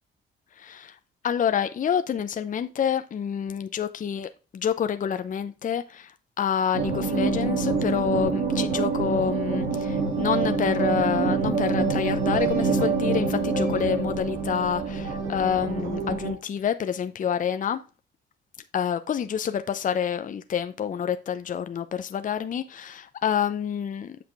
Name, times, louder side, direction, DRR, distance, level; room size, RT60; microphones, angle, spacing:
voice 1, 1.2-6.1 6.4-17.8 18.7-24.2, left 8 dB, 40° left, 0.6 m, -27 dB
sound 1, 6.7-16.3, right 4 dB, 75° right, 2.6 m, -26 dB
8.1 x 5.0 x 3.4 m
cardioid pair, 90°, 20 cm